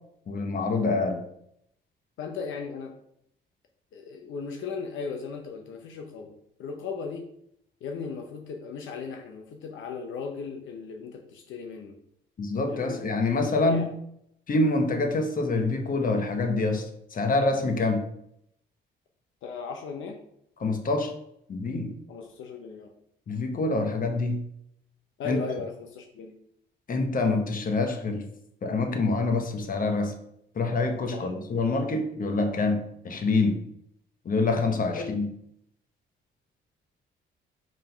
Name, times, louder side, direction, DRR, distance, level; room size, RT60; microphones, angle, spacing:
voice 1, 0.3-1.2 12.4-13.9 14.5-16.9 17.1-18.0 20.6-21.1 21.5-21.9 23.3-24.4 25.2-25.4 26.9-28.3 28.6-30.1 30.6-33.6 34.2-35.3, left 3 dB, 45° left, 5 dB, 1.2 m, -26 dB
voice 2, 2.2-2.9 3.9-6.3 6.6-7.2 7.8-12.0 12.7-13.9 19.4-20.2 22.1-22.9 25.2-26.3 31.1-31.3 34.9-35.1, left 5 dB, 75° left, 3 dB, 0.9 m, -37 dB
5.2 x 3.9 x 5.2 m, 0.72 s
cardioid pair, 90°, 20 cm